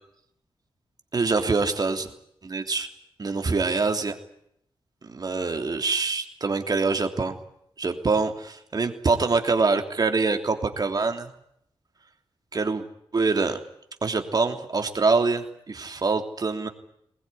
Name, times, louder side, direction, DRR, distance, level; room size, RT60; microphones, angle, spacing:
voice 1, 1.1-2.1 2.4-2.9 3.2-4.1 5.0-7.4 7.8-11.3 12.5-12.8 13.1-13.6 14.0-16.7, right 4 dB, 40° right, 5 dB, 3.2 m, -25 dB
22.0 x 20.5 x 10.0 m, 0.72 s
wide cardioid pair, 110°, 10 cm